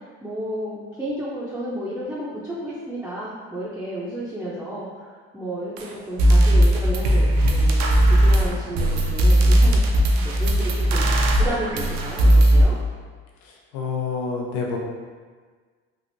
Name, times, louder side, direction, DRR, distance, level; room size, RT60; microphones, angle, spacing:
voice 1, 0.2-9.8 10.2-12.8, right 1 dB, 5° right, -9 dB, 0.6 m, -32 dB
sound 1, 5.8-5.9 6.2-12.6, right 1 dB, 65° right, 0.6 m, -17 dB
voice 2, 13.4-14.8, left 5 dB, 75° left, -1 dB, 0.7 m, -28 dB
3.4 x 2.5 x 2.6 m, 1.5 s
supercardioid pair, 95°, 30 cm